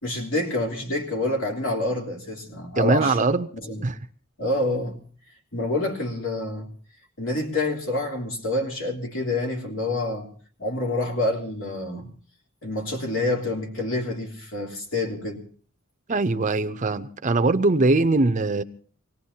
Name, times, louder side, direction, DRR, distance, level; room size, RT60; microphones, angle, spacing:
voice 1, 0.0-3.2 3.6-3.8 4.4-5.0 5.5-6.7 7.2-10.3 10.6-12.1 12.6-15.4, left 2 dB, 70° left, 3.3 m, -27 dB
voice 2, 2.8-3.5 3.8-4.0 16.1-18.6, right 3 dB, 35° right, 0.7 m, -21 dB
25.0 x 18.5 x 2.8 m
head